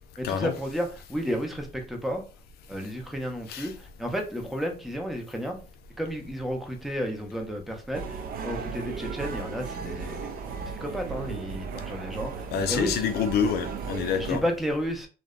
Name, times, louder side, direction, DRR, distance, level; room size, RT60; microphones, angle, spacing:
voice 1, 0.2-2.2 2.7-5.7 6.0-10.3 10.6-13.0 14.2-15.1, equal, ahead, 0.5 m, -32 dB
sound 1, 7.9-14.4, right 5 dB, 60° right, 0.4 m, -36 dB
voice 2, 12.5-14.4, left 7 dB, 70° left, 0.4 m, -27 dB
2.6 x 2.1 x 2.3 m
cardioid pair, 110°, 17 cm